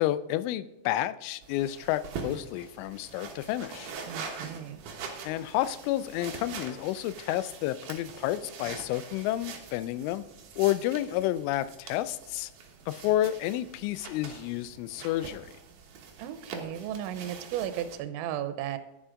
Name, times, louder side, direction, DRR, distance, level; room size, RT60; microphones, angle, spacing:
voice 1, 0.0-3.9 5.2-10.2 10.6-12.5 12.9-15.5, left 14 dB, 90° left, 14 dB, 3.0 m, -30 dB
sound 1, 1.4-18.0, right 5 dB, 70° right, 2.0 m, -44 dB
voice 2, 4.1-4.8 16.2-18.8, right 11 dB, 85° right, 10 dB, 3.0 m, -35 dB
11.0 x 10.0 x 3.7 m, 0.97 s
omnidirectional pair, 5.5 m